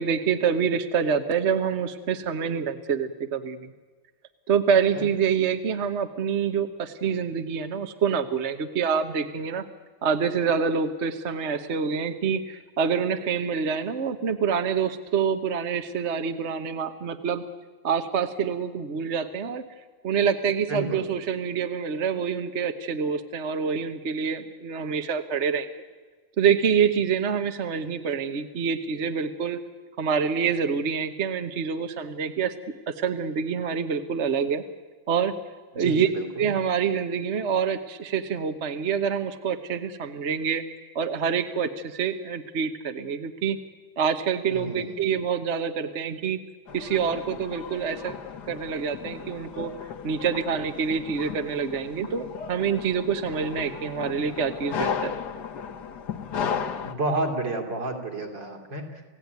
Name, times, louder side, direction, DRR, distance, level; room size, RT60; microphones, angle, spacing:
voice 1, 0.0-3.7 4.5-9.7 10.0-17.4 17.8-19.6 20.0-25.7 26.4-29.6 30.0-32.5 32.9-34.6 35.1-35.3 35.7-36.1 36.4-40.6 40.9-43.6 44.0-46.4 46.7-48.2 48.5-49.7 50.0-55.1, right 6 dB, 45° right, 8 dB, 1.1 m, -26 dB
voice 2, 20.7-21.1 35.8-36.5 44.5-45.0 56.8-58.9, right 2 dB, 60° right, 3 dB, 3.8 m, -30 dB
sound 1, 46.7-56.9, left 7 dB, 60° left, 1.6 m, -35 dB
28.5 x 17.0 x 9.4 m, 1.4 s
omnidirectional pair, 2.2 m